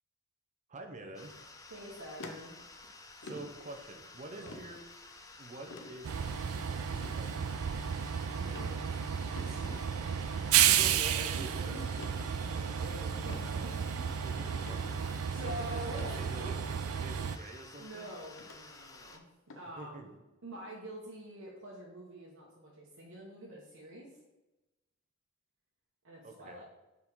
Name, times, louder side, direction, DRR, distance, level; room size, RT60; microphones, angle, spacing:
voice 1, 0.7-1.3 2.9-4.8 5.4-7.6 10.6-11.7 14.2-15.0 15.4-15.9 16.2-18.1 19.8-20.1 26.2-26.6, right 2 dB, 35° right, 4 dB, 0.7 m, -47 dB
sound 1, 1.1-19.2, left 3 dB, 15° left, 0.5 m, -53 dB
voice 2, 1.7-2.5 4.4-4.6 8.2-9.0 9.4-10.7 11.3-11.4 11.7-14.0 15.3-16.5 17.8-19.2 19.5-20.1 20.4-24.1 26.0-26.6, right 1 dB, 65° right, -4 dB, 1.1 m, -46 dB
sound 2, 2.2-2.9 3.2-3.5 4.5-4.7 5.7-5.9 6.9-7.2 7.7-8.1 8.5-8.7 9.4-9.8 10.7-11.0 12.0-12.3 13.3-13.5 13.9-14.0 14.5-14.9 15.9-16.1 17.2-17.3 18.4-18.6 19.5-19.7, left 3 dB, 65° left, 0.7 m, -47 dB
Train, 6.0-17.4, right 8 dB, 80° right, 0.4 m, -32 dB
4.8 x 4.1 x 5.3 m, 1.0 s
head